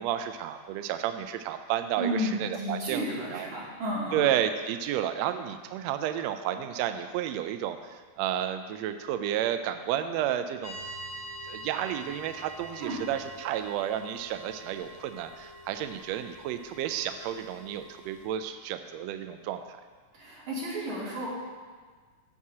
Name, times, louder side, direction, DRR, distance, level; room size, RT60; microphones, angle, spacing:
voice 1, 0.0-3.5 4.1-10.7 11.4-19.8, right 10 dB, 85° right, 8 dB, 1.5 m, -31 dB
voice 2, 2.0-4.3 12.8-13.0 20.1-21.3, equal, 65° right, -9 dB, 4.2 m, -32 dB
sound 1, 10.6-18.3, right 1 dB, 75° left, 3.3 m, -45 dB
14.0 x 7.3 x 2.8 m, 1.5 s
omnidirectional pair, 3.5 m